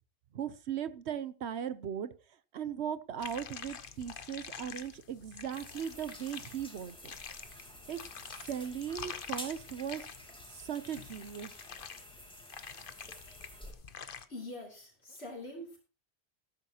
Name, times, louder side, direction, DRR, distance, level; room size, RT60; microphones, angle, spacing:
voice 1, 0.3-2.1 2.5-7.1 7.9-8.0 8.4-10.1 10.5-11.5, right 9 dB, 85° right, 14 dB, 1.1 m, -38 dB
sound 1, 3.2-14.3, left 6 dB, 55° left, 1.0 m, -47 dB
sound 2, 5.5-13.7, equal, 5° left, 2.4 m, -51 dB
voice 2, 14.3-15.8, left 1 dB, 75° left, -2 dB, 3.4 m, -44 dB
14.5 x 13.0 x 2.9 m, 0.33 s
omnidirectional pair, 1.1 m